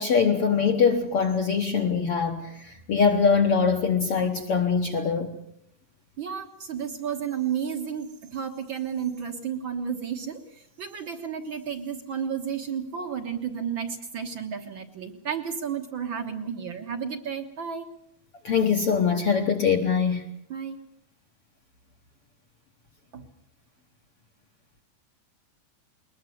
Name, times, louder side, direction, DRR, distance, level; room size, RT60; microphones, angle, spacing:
voice 1, 0.0-5.3 18.4-20.3, left 6 dB, 60° left, 3 dB, 1.6 m, -23 dB
voice 2, 6.2-10.4 10.8-17.8 20.5-20.8 23.1-23.2, right 7 dB, 55° right, 6 dB, 1.4 m, -32 dB
21.5 x 21.0 x 7.9 m, 0.72 s
omnidirectional pair, 4.1 m